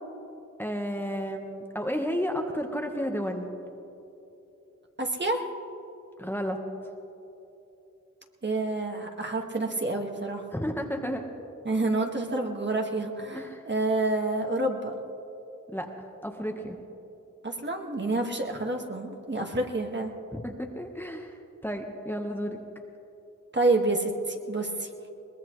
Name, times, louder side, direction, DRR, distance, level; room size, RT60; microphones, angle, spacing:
voice 1, 0.6-3.5 6.2-6.6 10.5-11.2 13.3-13.6 15.7-15.9 16.2-16.8 20.3-21.4 21.6-22.6, equal, 5° left, 2 dB, 1.3 m, -32 dB
voice 2, 5.0-5.4 8.4-10.4 11.6-14.9 17.4-20.1 23.5-24.9, right 2 dB, 35° right, 2 dB, 1.8 m, -28 dB
22.5 x 19.5 x 3.2 m, 2.9 s
cardioid pair, 60°, 32 cm